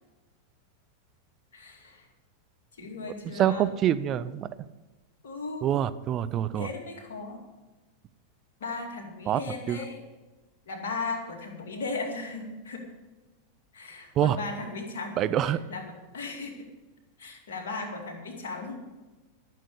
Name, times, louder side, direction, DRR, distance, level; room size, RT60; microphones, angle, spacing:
voice 1, 1.5-2.1 2.8-3.7 5.2-5.7 6.5-7.4 8.6-10.0 10.7-12.9 13.7-16.7 17.2-18.8, left 3 dB, 60° left, 1 dB, 2.3 m, -37 dB
voice 2, 3.3-4.5 5.6-6.7 9.3-9.4 9.7-9.8 14.2-14.4 15.2-15.6, right 11 dB, 30° right, 13 dB, 0.5 m, -25 dB
13.0 x 6.5 x 8.2 m, 1.2 s
figure-of-eight pair, 90°, 0 cm